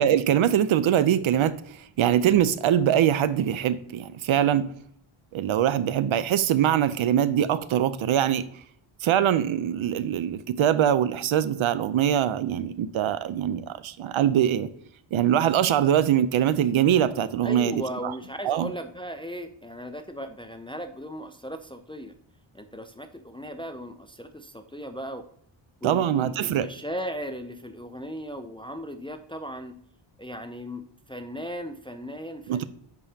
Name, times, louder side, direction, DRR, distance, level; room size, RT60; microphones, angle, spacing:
voice 1, 0.0-1.6 2.0-4.7 5.3-8.5 9.0-14.7 15.1-17.7 18.4-18.7 25.8-26.7 32.5-32.6, right 10 dB, 75° right, 14 dB, 0.6 m, -23 dB
voice 2, 17.4-22.1 22.5-25.2 25.8-29.8 30.2-32.6, equal, 10° left, 7 dB, 0.3 m, -37 dB
10.5 x 5.4 x 2.8 m, 0.65 s
wide cardioid pair, 155°, 49 cm